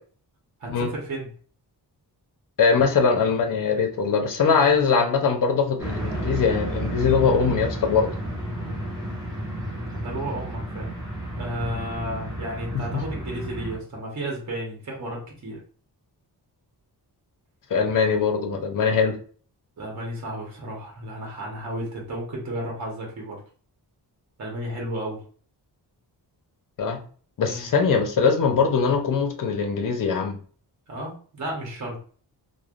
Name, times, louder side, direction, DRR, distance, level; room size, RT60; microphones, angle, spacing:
voice 1, 0.6-1.3 9.6-10.9 11.3-15.6 19.8-23.4 24.4-25.2 27.5-27.7 30.9-32.0, right 1 dB, 45° right, -2 dB, 1.0 m, -33 dB
voice 2, 2.6-8.1 12.7-13.0 17.7-19.2 26.8-27.0 27.4-30.4, left 5 dB, 50° left, 4 dB, 0.6 m, -22 dB
sound 1, 5.8-13.8, right 1 dB, 10° right, 0.9 m, -32 dB
3.2 x 2.1 x 2.4 m, 0.43 s
wide cardioid pair, 135°, 40 cm